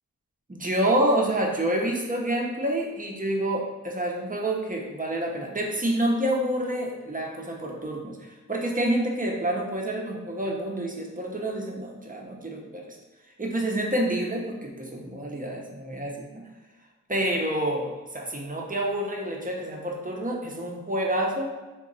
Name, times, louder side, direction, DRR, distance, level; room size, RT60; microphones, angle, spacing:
voice 1, 0.5-8.2 8.5-12.9 13.4-16.4 17.1-21.5, right 1 dB, 25° right, 0 dB, 0.6 m, -28 dB
2.9 x 2.2 x 3.8 m, 1.2 s
cardioid pair, 45°, 32 cm